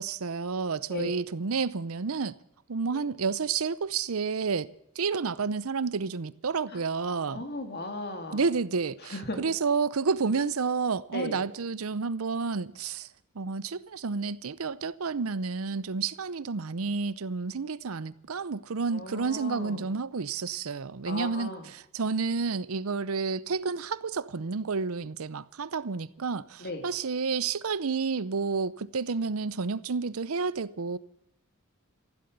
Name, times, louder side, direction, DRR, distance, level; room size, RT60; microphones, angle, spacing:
voice 1, 0.0-2.4 2.7-4.7 5.0-7.4 8.3-13.1 13.4-31.0, right 5 dB, 85° right, 0.7 m, -30 dB
voice 2, 7.1-8.4 9.0-9.5 11.1-11.4 18.9-19.9 21.0-21.7 26.6-26.8, left 2 dB, 50° left, 2.7 m, -37 dB
15.0 x 12.0 x 8.1 m
head